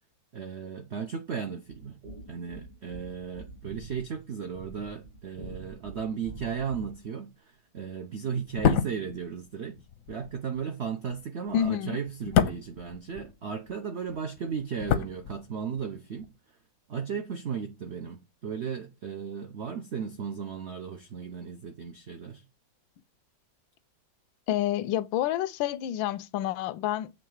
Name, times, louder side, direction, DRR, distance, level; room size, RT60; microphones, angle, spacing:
voice 1, 0.3-2.0 2.3-9.8 10.1-16.3 16.9-22.4, right 6 dB, 75° right, 0.6 m, -35 dB
sound 1, 1.7-7.1, right 3 dB, 60° right, 2.0 m, -46 dB
sound 2, 8.5-13.8 14.0-15.9 16.1-16.3, left 8 dB, 65° left, 0.8 m, -29 dB
voice 2, 11.5-12.0 24.5-27.1, left 11 dB, 85° left, 1.3 m, -28 dB
7.6 x 3.6 x 6.4 m
omnidirectional pair, 2.1 m